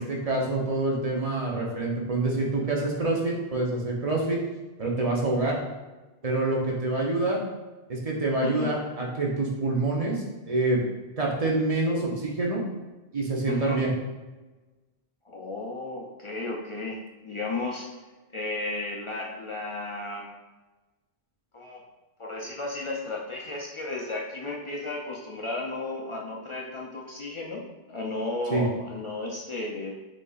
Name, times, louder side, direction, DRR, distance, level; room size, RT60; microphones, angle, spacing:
voice 1, 0.0-4.4 4.8-5.6 6.2-7.4 7.9-10.8 11.2-12.6 13.1-13.9 28.5-28.6, right 2 dB, 40° right, -2 dB, 0.7 m, -26 dB
voice 2, 8.4-8.8 13.5-13.8 15.3-17.9 18.3-20.2 21.5-21.8 22.2-27.6 27.9-29.9, left 2 dB, 45° left, -2 dB, 0.4 m, -34 dB
6.2 x 2.8 x 2.4 m, 1.2 s
omnidirectional pair, 1.0 m